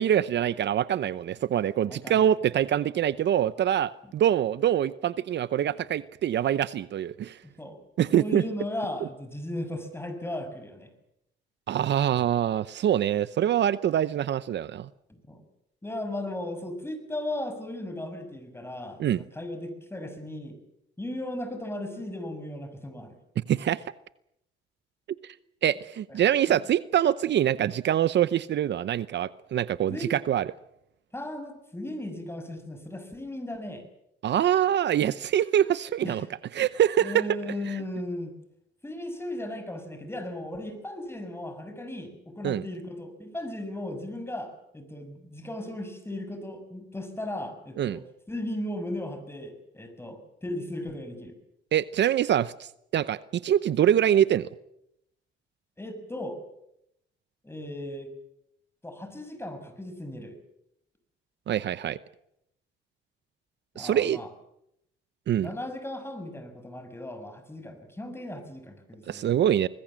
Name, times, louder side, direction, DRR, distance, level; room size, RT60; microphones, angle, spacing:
voice 1, 0.0-7.4 8.0-8.4 11.7-14.9 19.0-19.2 23.5-23.8 25.2-25.3 25.6-30.5 34.2-36.2 36.5-37.2 42.4-42.6 47.8-48.0 51.7-54.5 61.5-62.0 63.8-64.2 65.3-65.5 69.1-69.7, right 10 dB, 60° right, 16 dB, 0.8 m, -24 dB
voice 2, 1.9-2.3 7.4-7.8 8.1-10.9 15.3-15.4 15.8-20.6 21.0-23.2 26.1-26.2 26.5-26.6 29.9-30.1 31.1-33.8 36.0-36.3 37.0-38.3 38.8-51.3 55.8-56.4 57.4-58.1 58.8-60.4 63.7-64.3 65.4-69.3, left 1 dB, 10° left, 8 dB, 6.2 m, -36 dB
24.5 x 20.0 x 7.6 m, 0.80 s
cardioid pair, 90°, 20 cm